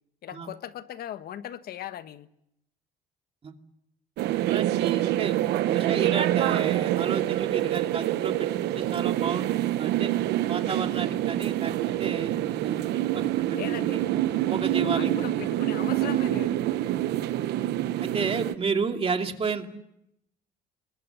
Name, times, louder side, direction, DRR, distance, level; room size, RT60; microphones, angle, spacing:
voice 1, 0.2-2.3 13.5-14.0 14.9-16.6, left 11 dB, 65° left, 12 dB, 1.3 m, -38 dB
sound 1, 4.2-18.5, right 13 dB, 80° right, 1.1 m, -26 dB
voice 2, 4.5-5.4 5.6-10.1 10.5-11.7 12.0-12.8 13.1-13.6 13.9-14.0 14.5-15.1 17.1-17.2 18.0-19.7, right 5 dB, 35° right, 4 dB, 2.6 m, -31 dB
28.0 x 21.5 x 7.0 m, 0.78 s
cardioid pair, 110°, 17 cm